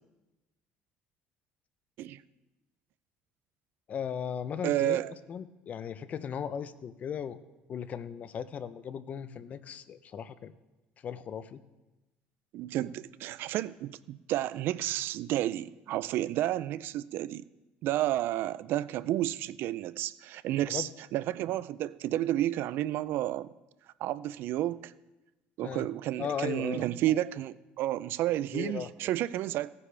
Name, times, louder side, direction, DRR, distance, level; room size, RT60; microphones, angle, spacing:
voice 1, 3.9-5.0 5.3-7.4 7.7-10.5 11.0-11.6 20.7-20.8 25.6-25.9 26.2-26.9 28.5-28.9, left 8 dB, 40° left, 0.6 m, -37 dB
voice 2, 4.6-5.1 12.5-17.5 17.8-23.5 24.0-24.9 25.6-29.7, right 14 dB, 60° right, 0.4 m, -31 dB
17.0 x 9.6 x 3.4 m
cardioid pair, 140°, 4 cm